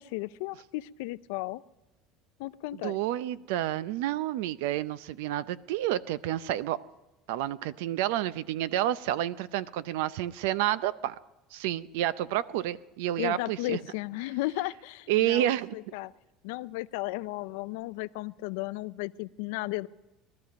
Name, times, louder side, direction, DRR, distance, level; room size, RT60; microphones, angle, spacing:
voice 1, 0.0-1.6 2.4-3.0 13.2-16.1 16.4-19.9, left 19 dB, 80° left, 17 dB, 0.4 m, -34 dB
voice 2, 2.7-6.8 7.3-11.2 11.5-13.8 15.1-15.7, right 13 dB, 85° right, 17 dB, 0.5 m, -29 dB
19.5 x 13.0 x 5.2 m, 1.1 s
cardioid pair, 175°, 0 cm